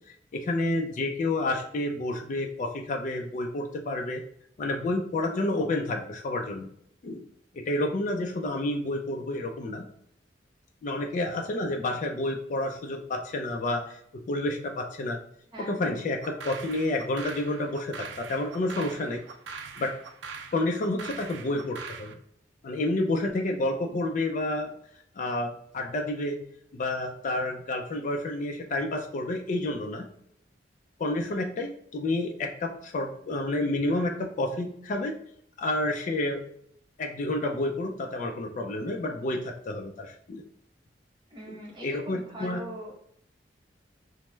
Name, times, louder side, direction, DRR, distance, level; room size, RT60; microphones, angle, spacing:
voice 1, 0.3-4.2 4.6-6.7 7.0-7.2 7.5-9.8 10.8-14.0 14.3-15.2 15.6-19.2 19.8-19.9 20.5-22.1 22.6-24.7 25.2-26.4 26.7-30.1 31.0-35.1 35.6-36.4 37.0-40.4 41.5-41.6 41.8-42.6, left 2 dB, 45° left, 3 dB, 0.3 m, -29 dB
voice 2, 15.5-15.9 41.3-43.0, equal, 25° right, -3 dB, 0.9 m, -42 dB
sound 1, 16.2-22.1, right 5 dB, 85° right, 0.4 m, -42 dB
3.1 x 2.0 x 3.2 m, 0.68 s
head